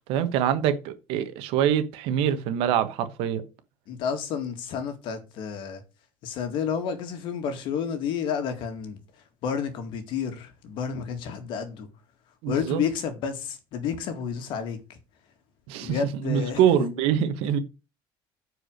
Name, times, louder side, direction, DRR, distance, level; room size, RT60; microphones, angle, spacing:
voice 1, 0.1-3.4 12.4-12.8 15.7-16.0 16.2-17.6, right 9 dB, 70° right, 1.3 m, -24 dB
voice 2, 3.9-5.8 6.2-9.0 9.4-11.9 12.5-15.0 15.8-16.9, left 7 dB, 55° left, 2.1 m, -30 dB
10.0 x 4.9 x 6.5 m
cardioid pair, 170°, 10 cm